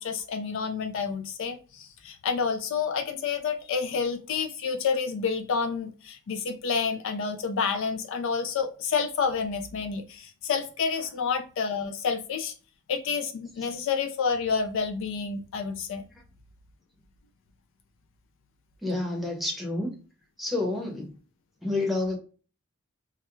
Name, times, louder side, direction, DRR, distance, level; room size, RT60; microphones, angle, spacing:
voice 1, 0.0-12.5 12.9-16.0, left 5 dB, 65° left, 6 dB, 0.4 m, -29 dB
voice 2, 18.8-19.9 20.4-21.1 21.6-22.2, left 2 dB, ahead, -1 dB, 0.7 m, -29 dB
2.3 x 2.1 x 2.9 m, 0.37 s
head